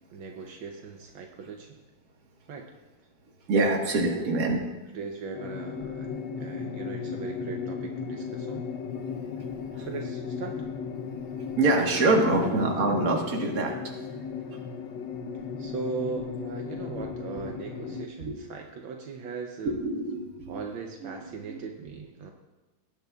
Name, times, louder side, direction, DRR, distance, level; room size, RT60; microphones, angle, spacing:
voice 1, 0.1-1.8 2.5-2.7 4.0-4.3 4.9-6.1 6.4-8.6 9.8-10.5 12.4-12.7 15.6-19.8 20.5-22.3, right 5 dB, 75° right, 3 dB, 1.5 m, -38 dB
voice 2, 3.5-4.6 8.9-9.1 9.7-9.9 11.3-13.8 14.5-14.6 17.5-17.6 18.2-18.3 19.8-20.7 21.0-21.6, right 2 dB, 45° right, 1 dB, 1.8 m, -26 dB
sound 1, 5.3-18.1, left 6 dB, 65° left, 1.1 m, -36 dB
18.0 x 9.6 x 2.4 m, 1.1 s
omnidirectional pair, 2.2 m